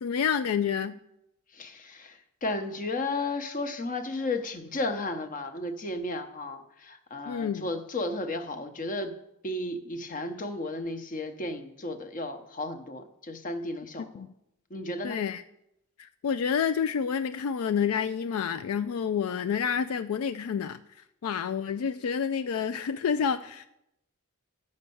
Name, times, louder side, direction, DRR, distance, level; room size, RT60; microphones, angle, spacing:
voice 1, 0.0-1.0 7.3-7.7 14.1-14.3 15.0-15.4 16.0-20.8 21.2-23.7, left 7 dB, 75° left, 11 dB, 0.4 m, -29 dB
voice 2, 1.5-9.1 9.4-14.2 14.7-15.2, left 2 dB, 40° left, 8 dB, 0.9 m, -34 dB
9.5 x 5.4 x 6.9 m, 0.81 s
head